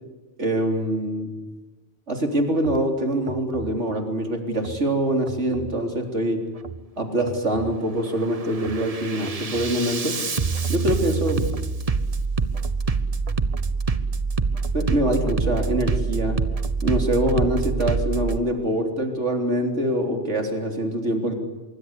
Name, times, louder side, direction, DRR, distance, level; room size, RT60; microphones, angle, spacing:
voice 1, 0.4-1.3 2.1-6.4 7.0-10.2 10.7-11.5 14.7-16.4 16.8-21.3, right 1 dB, 70° right, 4 dB, 3.9 m, -24 dB
Bass drum, 2.6-2.8 3.3-3.7 4.5-4.8 5.3-5.8 6.5-6.8 7.3-7.8 8.2-18.4, right 4 dB, 30° right, 1.0 m, -26 dB
25.5 x 23.5 x 8.2 m, 1.2 s
omnidirectional pair, 1.3 m